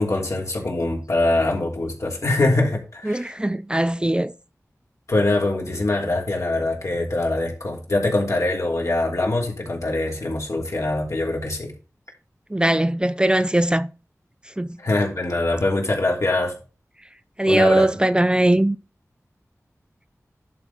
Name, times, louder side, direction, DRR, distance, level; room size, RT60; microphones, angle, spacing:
voice 1, 0.0-3.3 5.1-11.7 14.8-16.5 17.5-17.9, left 2 dB, 60° left, 3.1 m, -23 dB
voice 2, 3.1-4.3 12.5-13.9 14.6-14.7 17.4-18.8, right 1 dB, 15° right, 0.4 m, -20 dB
11.0 x 4.2 x 5.7 m
wide cardioid pair, 60°, 6 cm